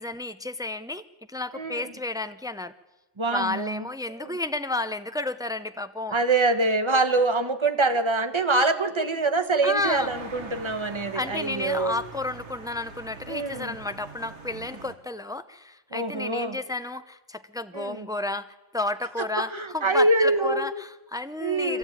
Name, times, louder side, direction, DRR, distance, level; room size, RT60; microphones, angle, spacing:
voice 1, 0.0-2.7 3.3-6.2 9.6-10.1 11.1-21.8, left 2 dB, 5° right, 11 dB, 0.4 m, -32 dB
voice 2, 1.5-1.8 3.2-3.9 4.2-4.4 6.1-11.9 13.3-13.8 15.9-16.6 17.7-18.1 19.2-20.6 21.4-21.8, right 2 dB, 25° right, 9 dB, 1.2 m, -25 dB
sound 1, 9.7-14.9, right 4 dB, 60° right, 2.0 m, -43 dB
23.5 x 15.5 x 9.1 m, 1.2 s
omnidirectional pair, 1.3 m